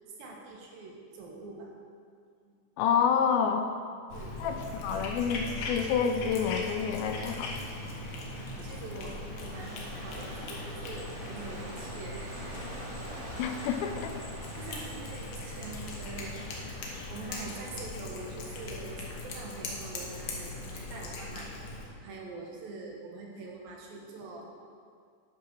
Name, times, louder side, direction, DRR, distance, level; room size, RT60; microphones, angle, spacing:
voice 1, 0.2-1.7 2.4-2.5 4.1-4.4 8.6-9.1 9.4-12.5 14.6-16.4 16.6-16.8 17.1-21.5 22.0-24.5, right 3 dB, 80° right, -1 dB, 2.9 m, -44 dB
voice 2, 2.8-3.7 4.4-7.6 13.4-14.1, left 7 dB, 85° left, 5 dB, 2.5 m, -28 dB
Cat, 4.1-21.9, left 2 dB, 65° left, 2.5 m, -40 dB
sound 1, 7.4-16.7, right 2 dB, 50° right, 0.9 m, -46 dB
sound 2, 11.0-16.2, left 1 dB, 40° left, 2.7 m, -55 dB
10.5 x 4.8 x 6.1 m, 2.2 s
omnidirectional pair, 4.2 m